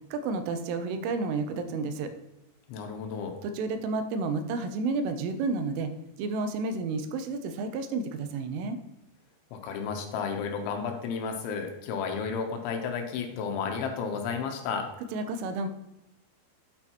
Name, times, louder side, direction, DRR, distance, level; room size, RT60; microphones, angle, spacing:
voice 1, 0.1-2.1 3.4-5.9 6.2-8.8 15.1-15.7, right 3 dB, 85° right, 8 dB, 3.3 m, -31 dB
voice 2, 2.7-3.4 9.5-14.9, left 6 dB, 75° left, 4 dB, 3.2 m, -32 dB
8.9 x 8.3 x 3.0 m, 0.94 s
omnidirectional pair, 5.7 m